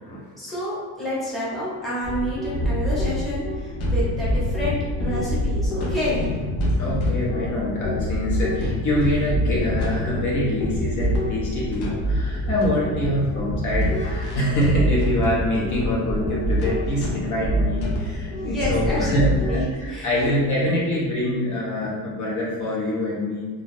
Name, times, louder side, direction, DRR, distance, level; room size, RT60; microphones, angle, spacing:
voice 1, 0.4-6.3 18.4-20.4, equal, ahead, -10 dB, 0.8 m, -29 dB
sound 1, 2.0-19.6, equal, 80° left, 0.8 m, -25 dB
voice 2, 6.7-23.5, left 1 dB, 50° left, -6 dB, 0.7 m, -25 dB
2.5 x 2.3 x 3.1 m, 1.5 s
cardioid pair, 155°, 39 cm